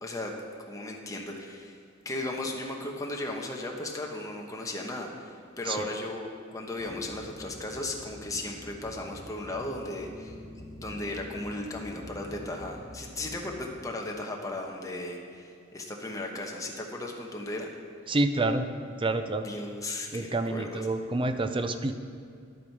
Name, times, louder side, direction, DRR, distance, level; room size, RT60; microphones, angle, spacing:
voice 1, 0.0-0.3 0.7-1.8 2.0-10.3 10.8-17.7 19.4-20.9, left 2 dB, 15° left, 0 dB, 1.1 m, -36 dB
sound 1, 6.8-13.8, left 1 dB, 40° left, 2.6 m, -47 dB
voice 2, 18.1-18.7 19.0-19.4 20.1-22.0, right 2 dB, 25° right, 8 dB, 0.5 m, -28 dB
10.5 x 8.4 x 4.7 m, 2.3 s
head